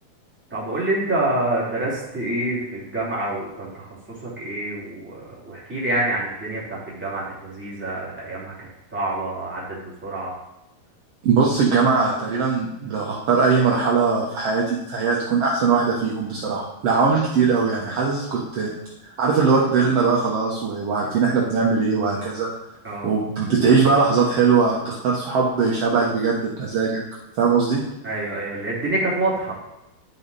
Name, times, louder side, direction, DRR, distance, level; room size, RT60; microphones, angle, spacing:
voice 1, 0.5-3.9 4.2-10.3 22.8-23.1 28.0-29.6, right 2 dB, 5° right, -7 dB, 2.2 m, -27 dB
voice 2, 11.2-18.7 19.0-22.5 23.0-27.0 27.4-27.8, right 5 dB, 70° right, -4 dB, 1.4 m, -20 dB
11.0 x 5.6 x 4.1 m, 0.92 s
omnidirectional pair, 4.5 m